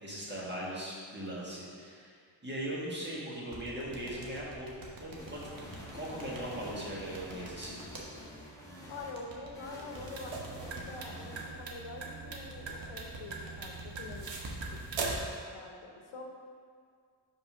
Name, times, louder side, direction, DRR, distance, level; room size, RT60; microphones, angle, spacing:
voice 1, 0.0-2.1 2.4-4.7 5.0-5.4 5.9-7.8, right 1 dB, 25° right, -6 dB, 1.6 m, -39 dB
sound 1, 3.5-8.0 9.1-10.8 12.3-15.2, right 2 dB, 45° right, 1.2 m, -46 dB
sound 2, 5.2-9.1 9.5-12.1, equal, 5° left, 1.2 m, -48 dB
voice 2, 8.9-16.2, left 3 dB, 80° left, 1 dB, 0.9 m, -46 dB
sound 3, 9.9-15.4, right 4 dB, 70° right, 0.9 m, -41 dB
5.3 x 3.9 x 5.5 m, 2.1 s
cardioid pair, 100°, 47 cm